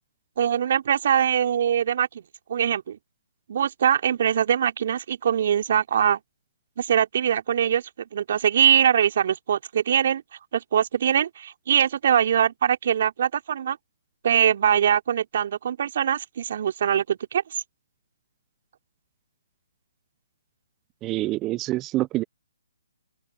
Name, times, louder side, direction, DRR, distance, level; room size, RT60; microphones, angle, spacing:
voice 1, 0.4-2.2 2.5-3.0 3.5-6.2 6.8-10.2 10.5-13.8 14.2-17.4, right 9 dB, 50° right, 3.6 m, -22 dB
voice 2, 21.0-22.2, right 17 dB, 20° right, 1.1 m, -26 dB
open air
figure-of-eight pair, 140°, 0 cm